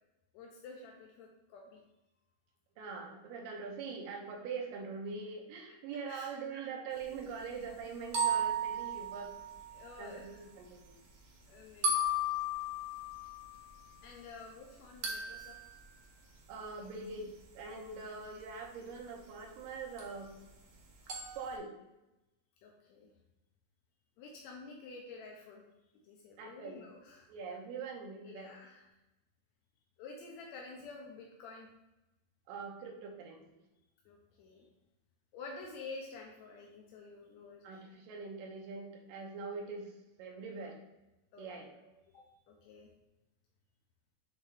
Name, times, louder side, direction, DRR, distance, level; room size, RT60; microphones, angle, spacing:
voice 1, 0.3-1.8 6.1-6.3 7.1-7.2 9.7-10.4 11.5-12.1 14.0-15.6 22.6-23.1 24.2-25.6 26.0-27.3 28.2-28.9 30.0-31.7 34.0-34.7 35.3-37.8 41.3-41.6 42.1-42.9, left 3 dB, 75° left, 0 dB, 1.6 m, -50 dB
voice 2, 2.8-9.3 10.0-11.0 16.5-20.3 21.4-21.7 26.4-26.8 27.3-28.5 32.5-33.4 37.6-40.8 41.4-41.9, right 4 dB, 80° right, 0 dB, 2.6 m, -43 dB
sound 1, 8.1-10.1 11.8-14.1 15.0-15.8 20.0-20.1 21.1-21.6, right 1 dB, 60° right, 1.7 m, -35 dB
8.2 x 3.6 x 3.4 m, 0.96 s
omnidirectional pair, 4.0 m